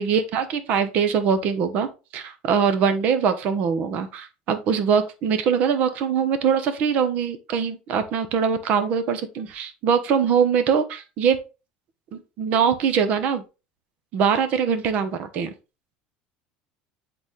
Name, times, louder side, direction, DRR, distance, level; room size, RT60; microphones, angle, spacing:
voice 1, 0.0-11.4 12.1-13.4 14.1-15.5, right 7 dB, 45° right, 10 dB, 0.9 m, -22 dB
7.9 x 3.9 x 3.2 m, 0.29 s
cardioid pair, 165°, 3 cm